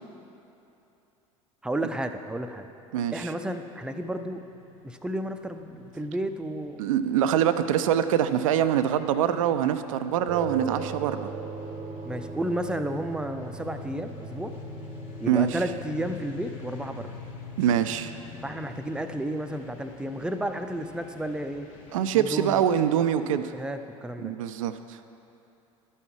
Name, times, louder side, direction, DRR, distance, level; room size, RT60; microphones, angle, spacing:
voice 1, 1.6-2.7 3.1-4.4 4.8-6.8 12.0-14.5 15.2-17.1 18.4-21.7 22.1-22.6 23.5-24.3, right 1 dB, 5° right, 7 dB, 0.5 m, -32 dB
voice 2, 2.9-3.3 6.8-11.2 15.3-15.5 17.6-18.1 21.9-23.5 24.2-24.8, right 9 dB, 70° right, 10 dB, 0.4 m, -24 dB
sound 1, 4.0-22.1, left 3 dB, 65° left, 1.2 m, -46 dB
sound 2, 10.3-19.0, right 5 dB, 40° right, 0.8 m, -40 dB
12.5 x 5.6 x 4.7 m, 2.8 s
figure-of-eight pair, 70°, 18 cm